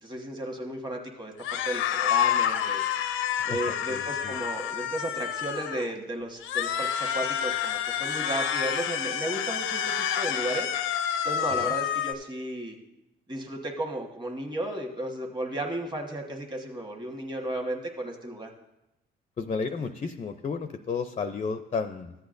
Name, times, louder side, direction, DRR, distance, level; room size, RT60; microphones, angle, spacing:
voice 1, 0.0-2.8 3.4-10.7 11.2-12.8 13.3-18.5, right 1 dB, 20° right, 2 dB, 1.4 m, -34 dB
sound 1, 1.4-5.9 6.4-12.1, left 9 dB, 90° left, 0.5 m, -28 dB
voice 2, 3.4-4.4 11.6-11.7 19.4-22.1, left 5 dB, 30° left, 8 dB, 0.5 m, -33 dB
14.0 x 8.1 x 2.6 m, 0.91 s
cardioid pair, 90°, 20 cm